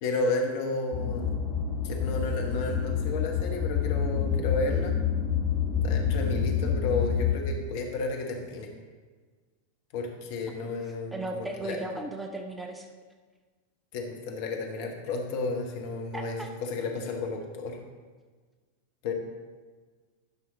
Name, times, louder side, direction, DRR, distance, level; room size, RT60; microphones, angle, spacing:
voice 1, 0.0-1.4 1.8-5.0 5.8-8.7 9.9-11.8 13.9-17.8 19.0-19.1, left 3 dB, 50° left, 2 dB, 1.3 m, -32 dB
sound 1, 0.9-7.3, left 7 dB, 30° left, 2.2 m, -28 dB
voice 2, 11.1-12.9 16.1-16.5, right 2 dB, 5° right, 3 dB, 0.7 m, -36 dB
11.0 x 5.6 x 3.8 m, 1.4 s
figure-of-eight pair, 90°, 0 cm